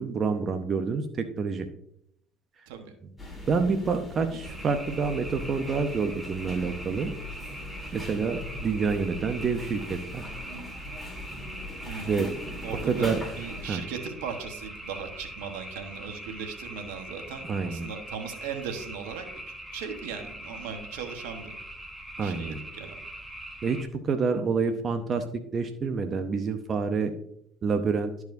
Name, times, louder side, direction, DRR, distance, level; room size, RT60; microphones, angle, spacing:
voice 1, 0.0-1.7 3.5-7.1 7.9-10.2 12.1-12.3 12.9-13.2 13.6-13.8 17.4-17.9 22.2-22.6 23.6-25.3 25.5-27.1 27.6-28.1, right 5 dB, 40° right, 7 dB, 0.7 m, -28 dB
sound 1, 3.2-13.7, left 1 dB, 15° left, 3.0 m, -40 dB
sound 2, 4.4-23.8, right 1 dB, 5° right, 1.5 m, -42 dB
voice 2, 11.8-12.2 12.6-19.2 19.7-21.5 22.2-22.9, right 6 dB, 80° right, 6 dB, 1.2 m, -38 dB
12.0 x 4.7 x 2.6 m, 0.73 s
hypercardioid pair, 70°, 0 cm